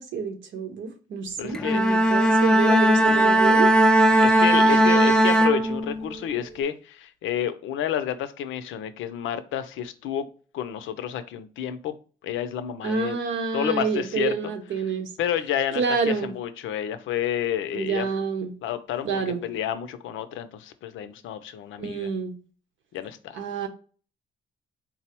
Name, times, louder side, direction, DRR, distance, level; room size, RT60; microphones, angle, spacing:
voice 1, 0.0-4.0 4.7-4.8 12.8-15.1 15.8-16.3 17.7-18.5 19.0-19.4 21.8-22.3 23.3-23.7, right 5 dB, 70° right, 0.9 m, -28 dB
voice 2, 1.4-2.0 4.2-10.3 10.5-12.0 12.2-13.2 13.5-14.5 15.2-18.1 18.6-22.1 22.9-23.4, left 10 dB, 80° left, 0.5 m, -30 dB
Bowed string instrument, 1.5-6.2, right 1 dB, 5° left, 0.4 m, -18 dB
3.8 x 2.0 x 4.3 m
cardioid pair, 90°, 20 cm